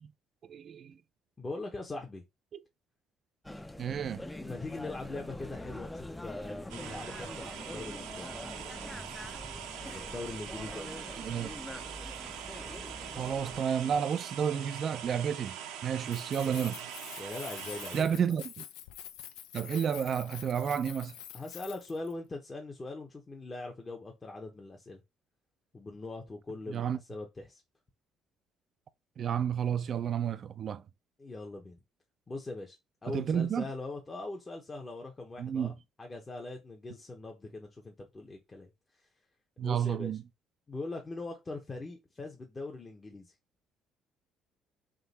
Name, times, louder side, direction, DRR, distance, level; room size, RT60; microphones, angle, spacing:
voice 1, 0.5-0.9 2.5-2.6 3.8-4.2 11.2-11.5 13.2-15.5 15.8-16.8 17.9-18.6 19.5-21.2 26.7-27.0 29.2-30.8 33.1-33.6 35.4-35.7 39.6-40.2, right 8 dB, 55° right, 0.4 m, -31 dB
voice 2, 1.4-2.2 4.4-8.4 9.9-10.9 17.2-18.2 21.3-25.0 25.7-27.6 31.2-31.8 32.3-32.8 33.0-38.7 39.0-39.1 39.6-40.1 40.7-43.3, left 2 dB, 30° left, 0.9 m, -41 dB
sound 1, 3.4-13.6, left 1 dB, 10° left, 0.5 m, -44 dB
sound 2, 6.7-18.0, right 9 dB, 85° right, 0.7 m, -43 dB
Keys jangling, 16.1-22.1, left 11 dB, 85° left, 0.4 m, -47 dB
3.7 x 2.7 x 4.1 m
supercardioid pair, 70°, 0 cm